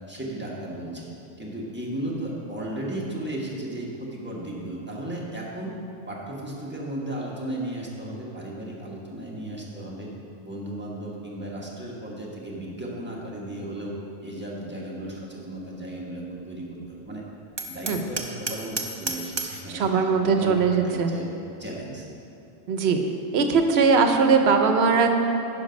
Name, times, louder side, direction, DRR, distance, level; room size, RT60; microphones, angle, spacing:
voice 1, 0.1-1.1 1.4-5.7 6.1-10.1 10.4-14.0 14.2-17.2 17.7-21.3 21.6-22.1, right 1 dB, 10° right, -4 dB, 1.3 m, -35 dB
Hammer, 17.6-19.7, right 4 dB, 35° right, 0.4 m, -32 dB
voice 2, 19.7-21.1 22.7-23.0 23.3-25.2, right 5 dB, 70° right, 5 dB, 1.0 m, -20 dB
10.0 x 5.4 x 5.2 m, 2.7 s
omnidirectional pair, 1.1 m